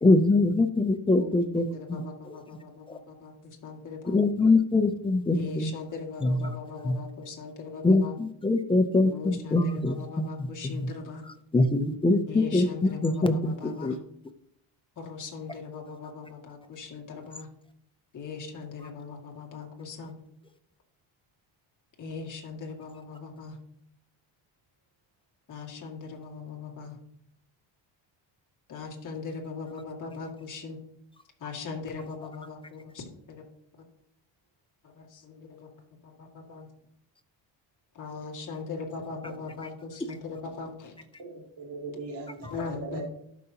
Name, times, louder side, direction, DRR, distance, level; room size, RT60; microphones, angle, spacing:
voice 1, 0.0-2.0 4.1-5.7 6.2-6.5 6.8-7.0 7.8-10.9 11.5-14.0, left 2 dB, 15° left, 9 dB, 0.3 m, -24 dB
voice 2, 1.2-4.2 5.3-8.2 9.0-11.2 12.3-14.0 15.0-17.5 18.1-20.2 22.0-23.6 25.5-27.0 28.7-30.8 31.4-33.4 35.0-35.7 36.0-36.7 37.9-40.9 42.5-43.0, left 4 dB, 40° left, -1 dB, 2.1 m, -40 dB
voice 3, 41.2-43.0, right 3 dB, 55° right, -1 dB, 2.7 m, -39 dB
12.5 x 5.6 x 2.8 m, 0.71 s
cardioid pair, 140°, 48 cm